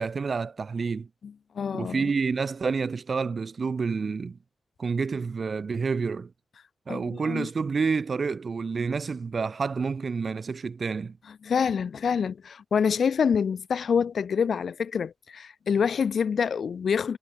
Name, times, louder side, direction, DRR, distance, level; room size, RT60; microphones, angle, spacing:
voice 1, 0.0-1.1 1.7-4.4 4.8-6.3 6.9-11.2, right 5 dB, 45° right, 0.6 m, -29 dB
voice 2, 1.2-2.1 6.9-7.5 11.4-17.2, left 6 dB, 65° left, 0.4 m, -26 dB
wide cardioid pair, 120°, 0 cm